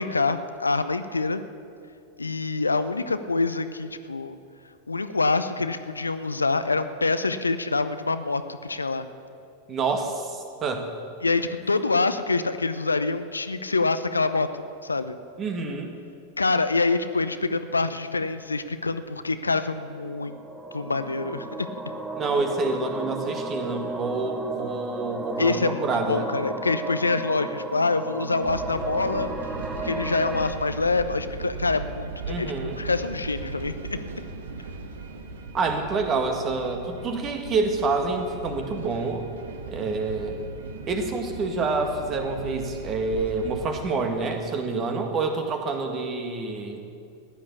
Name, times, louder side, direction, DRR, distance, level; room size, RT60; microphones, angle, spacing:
voice 1, 0.0-1.4 2.2-4.3 4.9-9.0 11.2-15.2 16.4-20.4 20.7-21.7 25.4-29.3 29.7-33.7, left 3 dB, 80° left, 11 dB, 0.7 m, -26 dB
voice 2, 9.7-10.9 15.4-15.9 22.2-26.3 32.3-32.8 35.5-39.2 39.7-40.4 40.8-46.8, right 3 dB, 30° right, 5 dB, 2.0 m, -27 dB
sound 1, 19.9-30.5, right 2 dB, 10° right, 1.5 m, -34 dB
sound 2, 28.4-43.9, right 3 dB, 65° right, 1.6 m, -37 dB
15.5 x 10.5 x 8.5 m, 2.5 s
figure-of-eight pair, 90°, 0 cm